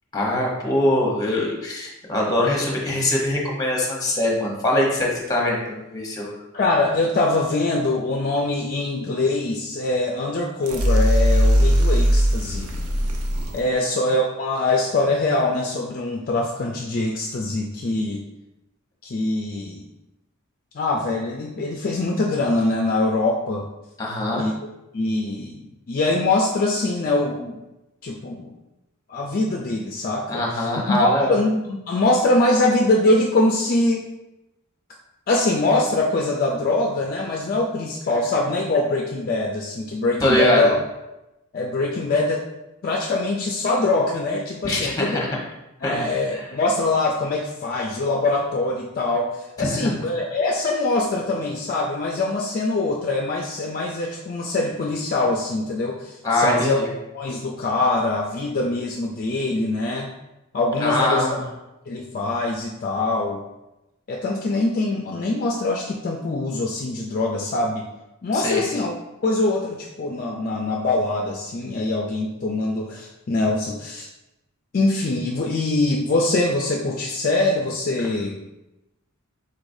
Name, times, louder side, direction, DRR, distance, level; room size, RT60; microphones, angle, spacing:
voice 1, 0.1-6.3 13.6-13.8 24.0-24.4 30.3-31.3 40.2-40.7 44.6-45.3 45.8-46.0 46.3-46.5 49.6-49.9 56.2-56.9 60.8-61.4 68.3-68.6, left 1 dB, 15° left, -2 dB, 0.9 m, -23 dB
voice 2, 6.5-12.7 13.5-18.2 19.0-19.9 20.7-23.7 24.3-24.5 24.9-25.6 25.9-27.6 28.0-28.5 29.1-34.1 35.3-40.7 41.5-42.4 42.8-45.2 45.8-56.8 57.1-60.1 60.5-61.3 61.9-63.4 64.1-67.8 68.2-68.9 69.2-74.1 74.7-78.4, left 2 dB, 40° left, -1 dB, 0.4 m, -23 dB
sound 1, 10.6-13.6, equal, 85° right, 0.6 m, -19 dB
4.8 x 4.1 x 2.6 m, 0.96 s
head